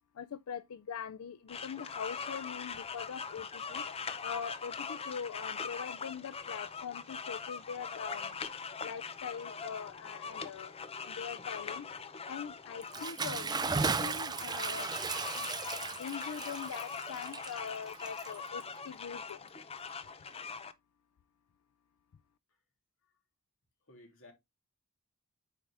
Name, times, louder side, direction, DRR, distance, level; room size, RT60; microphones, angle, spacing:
voice 1, 0.1-3.8 4.2-8.4 8.8-10.7 11.0-11.9 12.3-13.7 14.0-14.9 15.3-19.5, left 7 dB, 85° left, 0.4 m, -43 dB
sound 1, 1.5-20.7, left 5 dB, 25° left, 0.5 m, -42 dB
Bathtub (filling or washing) / Splash splatter, 12.8-18.8, right 4 dB, 20° right, 0.5 m, -36 dB
voice 2, 23.8-24.3, left 1 dB, 65° left, 3.1 m, -57 dB
8.3 x 4.9 x 3.3 m
head